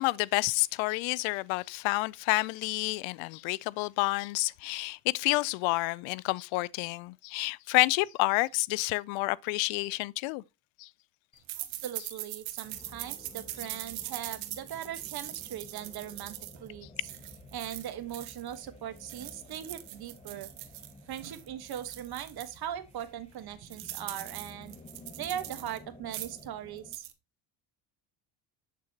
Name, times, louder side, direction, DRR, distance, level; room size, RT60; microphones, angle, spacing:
voice 1, 0.0-10.4 10.8-10.9, left 22 dB, 75° left, 0.5 m, -29 dB
sound 1, 11.5-18.6 19.0-22.6 23.0-23.1 23.3-25.8 26.0-26.5 26.8-27.1, right 15 dB, 80° right, 1.3 m, -42 dB
voice 2, 11.6-16.3 16.6-16.9 17.5-20.5 21.1-24.8 25.2-27.0, right 10 dB, 50° right, 1.4 m, -40 dB
sound 2, 12.6-27.0, left 2 dB, 15° left, 1.5 m, -53 dB
7.8 x 6.8 x 2.9 m
supercardioid pair, 90°, 46 cm